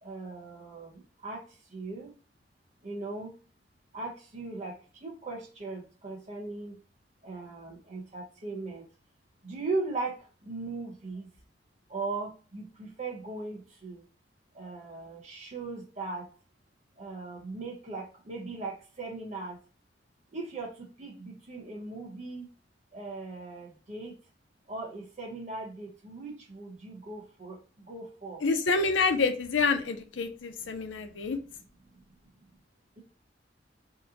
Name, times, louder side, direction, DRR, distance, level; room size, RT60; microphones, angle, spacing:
voice 1, 0.0-2.1 2.8-3.3 3.9-6.8 7.2-8.9 9.4-11.3 11.9-14.0 14.5-16.3 17.0-19.6 20.3-22.5 22.9-24.2 24.7-28.4 31.0-31.2 31.9-32.0, right 3 dB, 40° right, -1 dB, 1.0 m, -38 dB
voice 2, 28.4-31.4, left 4 dB, 90° left, 7 dB, 0.5 m, -27 dB
2.9 x 2.1 x 3.8 m, 0.39 s
head